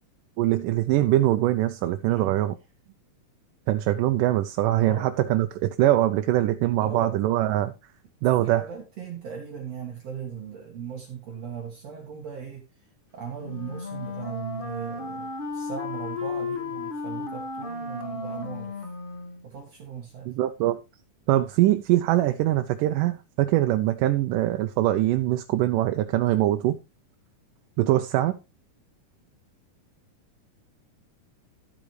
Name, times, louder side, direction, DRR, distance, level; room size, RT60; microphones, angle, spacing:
voice 1, 0.4-2.5 3.7-7.7 8.2-8.7 20.3-20.8 21.3-26.8 27.8-28.4, right 14 dB, 85° right, 2.3 m, -23 dB
voice 2, 2.1-2.4 2.9-3.0 4.8-5.1 6.8-7.2 8.4-12.7 13.1-18.8 19.4-20.3, right 7 dB, 55° right, 2.9 m, -38 dB
Wind instrument woodwind instrument, 13.4-19.4, left 3 dB, 30° left, 1.0 m, -34 dB
12.5 x 8.8 x 3.1 m
omnidirectional pair, 3.7 m